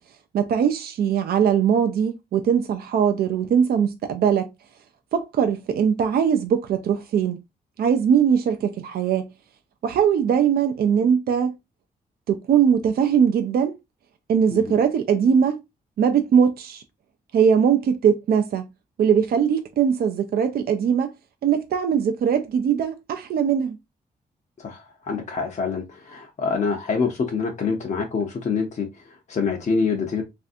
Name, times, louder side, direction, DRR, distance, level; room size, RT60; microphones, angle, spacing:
voice 1, 0.3-4.5 5.1-7.4 7.8-9.3 9.8-11.5 12.3-13.8 14.3-15.6 16.0-16.8 17.3-18.7 19.0-21.1 21.4-23.8, right 7 dB, 75° right, 0.4 m, -21 dB
voice 2, 24.6-30.2, left 5 dB, 50° left, 0.6 m, -26 dB
3.3 x 2.6 x 2.5 m
cardioid pair, 90°, 16 cm